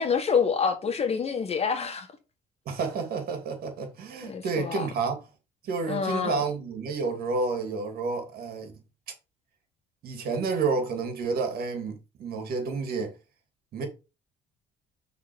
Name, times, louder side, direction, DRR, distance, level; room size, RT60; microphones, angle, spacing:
voice 1, 0.0-2.1 4.2-4.9 5.9-6.4, left 6 dB, 35° left, 1.6 m, -27 dB
voice 2, 2.7-5.2 5.6-8.7 10.0-13.1 13.7-13.9, right 4 dB, 65° right, 2.7 m, -30 dB
6.0 x 4.1 x 6.1 m
cardioid pair, 110°, 17 cm